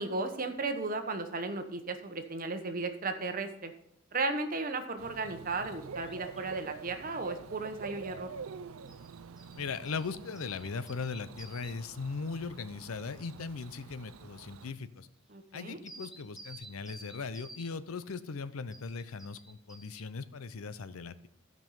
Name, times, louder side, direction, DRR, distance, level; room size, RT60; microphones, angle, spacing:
voice 1, 0.0-3.7 4.1-8.3 15.3-15.8, right 3 dB, 40° right, 7 dB, 0.9 m, -35 dB
Bird / Cricket, 5.0-14.7, right 5 dB, 85° right, 0.5 m, -47 dB
sound 1, 6.0-6.4 6.7-7.2 8.9-12.1 15.3-15.4 15.9-17.7 18.7-20.0, right 2 dB, ahead, 1.0 m, -52 dB
voice 2, 9.6-15.1 15.5-21.3, left 4 dB, 90° left, 14 dB, 0.6 m, -39 dB
12.0 x 5.4 x 5.5 m, 0.71 s
head